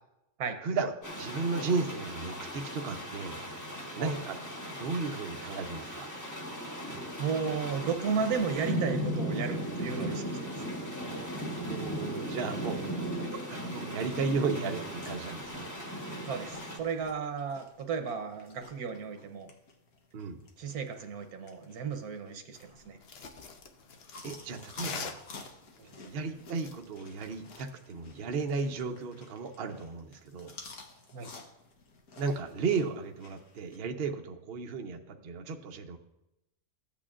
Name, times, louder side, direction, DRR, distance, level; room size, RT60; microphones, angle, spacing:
voice 1, 0.6-3.4 4.0-4.4 4.7-6.1 11.6-15.7 20.1-20.4 24.2-25.2 26.0-30.6 32.2-36.0, right 4 dB, 50° right, 4 dB, 0.8 m, -34 dB
sound 1, 1.0-16.8, equal, 15° left, 1.0 m, -37 dB
voice 2, 6.9-10.7 12.7-12.8 16.2-19.5 20.6-23.0 25.8-25.9 31.1-31.3, right 6 dB, 80° right, 6 dB, 1.4 m, -34 dB
sound 2, 15.0-33.8, left 3 dB, 75° left, 1.6 m, -53 dB
sound 3, 22.5-27.7, left 5 dB, 55° left, 0.8 m, -45 dB
14.5 x 8.6 x 2.5 m, 0.89 s
omnidirectional pair, 1.6 m